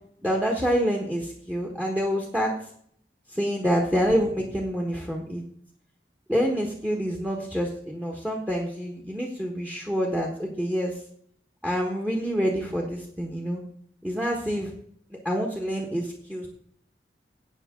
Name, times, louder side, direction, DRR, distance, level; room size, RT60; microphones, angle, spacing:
voice 1, 0.2-2.5 3.3-5.4 6.3-10.9 11.6-13.6 14.0-14.7 15.2-16.5, equal, 10° right, 1 dB, 1.3 m, -27 dB
17.0 x 6.6 x 3.7 m, 0.64 s
head